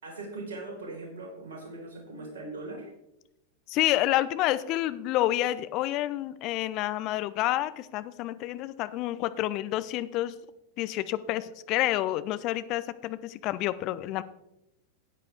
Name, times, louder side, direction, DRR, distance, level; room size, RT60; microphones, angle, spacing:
voice 1, 0.0-2.9, right 2 dB, 60° right, -1 dB, 4.4 m, -40 dB
voice 2, 3.7-10.3 10.8-14.2, left 15 dB, 40° left, 14 dB, 0.6 m, -29 dB
13.0 x 9.4 x 3.5 m, 0.88 s
figure-of-eight pair, 90°, 0 cm